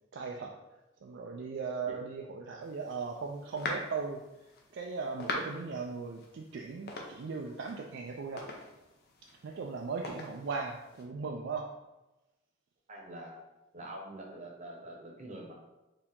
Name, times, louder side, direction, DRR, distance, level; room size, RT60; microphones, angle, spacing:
voice 1, 0.1-0.6 1.0-4.2 4.7-8.5 9.4-11.7, right 4 dB, 60° right, 1 dB, 0.3 m, -38 dB
sound 1, 2.6-11.1, left 2 dB, 50° left, 0.7 m, -44 dB
voice 2, 12.9-13.4 13.7-15.5, right 1 dB, 35° right, 0 dB, 0.9 m, -45 dB
4.5 x 2.8 x 3.6 m, 1.0 s
head